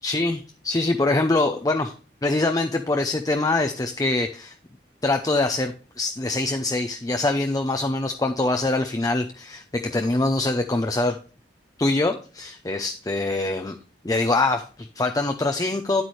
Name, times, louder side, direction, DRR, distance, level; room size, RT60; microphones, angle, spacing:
voice 1, 0.0-1.9 2.2-4.6 5.0-11.2 11.8-13.8 14.0-16.0, left 2 dB, 20° left, 6 dB, 0.6 m, -24 dB
9.6 x 8.2 x 3.1 m, 0.38 s
head